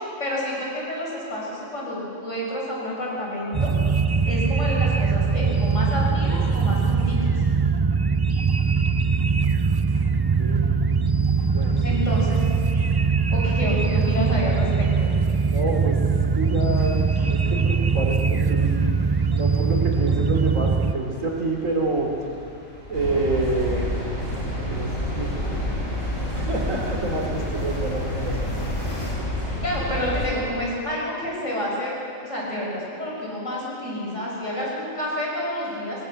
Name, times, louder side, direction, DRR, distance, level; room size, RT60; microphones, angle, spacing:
voice 1, 0.2-3.7 4.2-7.4 11.8-12.4 13.3-15.1 29.6-32.0 32.2-36.1, left 1 dB, 65° left, -4 dB, 6.2 m, -29 dB
sound 1, 3.5-20.9, right 5 dB, 40° right, 0.3 m, -21 dB
sound 2, 9.7-29.1, left 1 dB, 50° left, 4.2 m, -44 dB
voice 2, 10.4-10.7 11.4-12.0 15.5-16.0 16.3-18.7 19.3-22.1 22.9-23.9 24.3-25.7 26.3-28.5, right 2 dB, 75° right, 1 dB, 3.3 m, -28 dB
sound 3, 22.9-30.3, left 1 dB, 85° left, 6.3 m, -28 dB
24.0 x 19.5 x 6.5 m, 2.6 s
omnidirectional pair, 1.4 m